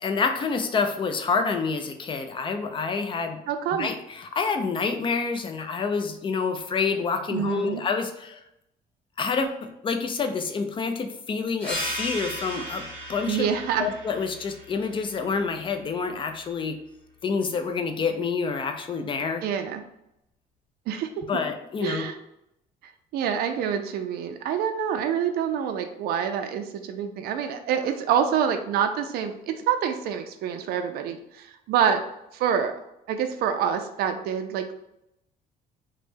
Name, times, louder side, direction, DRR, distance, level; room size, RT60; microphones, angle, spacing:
voice 1, 0.0-3.4 3.7-8.4 9.2-13.5 13.8-16.8 17.2-19.4 21.3-22.1, left 5 dB, 30° left, 6 dB, 0.4 m, -28 dB
voice 2, 3.5-3.9 7.3-7.8 13.3-13.9 19.4-19.8 20.9-21.3 21.8-22.1 23.1-32.0 32.3-32.7 33.1-34.7, right 8 dB, 70° right, 7 dB, 0.4 m, -26 dB
sound 1, 11.6-16.8, equal, 5° left, 1.5 m, -37 dB
3.1 x 2.1 x 3.3 m, 0.83 s
cardioid pair, 110°, 17 cm